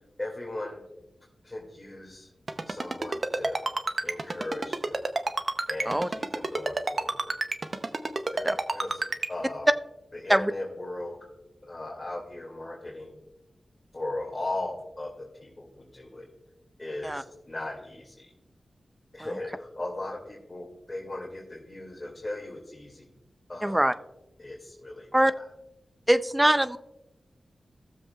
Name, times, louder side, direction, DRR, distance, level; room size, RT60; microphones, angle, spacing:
voice 1, 0.2-0.8 1.4-2.3 2.7-3.6 4.0-5.0 5.7-7.3 8.1-9.7 10.1-11.2 11.6-13.1 13.9-16.3 16.8-18.3 19.1-23.1 23.5-23.9 24.4-25.4, left 2 dB, 30° left, -3 dB, 2.2 m, -38 dB
Ringtone, 2.5-9.3, right 3 dB, 50° right, 0.7 m, -29 dB
voice 2, 23.6-23.9 25.1-25.3 26.1-26.8, right 1 dB, 15° right, 13 dB, 0.5 m, -22 dB
17.0 x 7.2 x 2.3 m, 0.93 s
cardioid pair, 50°, 0 cm